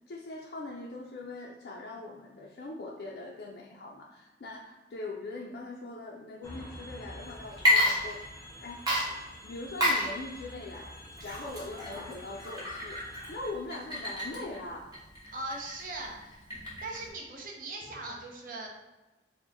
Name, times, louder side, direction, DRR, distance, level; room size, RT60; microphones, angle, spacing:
voice 1, 0.0-8.2 8.6-8.9 9.4-15.0, left 2 dB, 60° left, -2 dB, 0.4 m, -41 dB
sound 1, 6.4-13.5, left 1 dB, 15° left, 0.6 m, -48 dB
Water / Liquid, 7.5-8.5 8.9-17.1, left 1 dB, 25° right, 1.0 m, -31 dB
voice 2, 15.3-16.4 16.8-18.7, right 2 dB, 50° right, -1 dB, 0.7 m, -39 dB
4.5 x 2.1 x 4.1 m, 1.1 s
head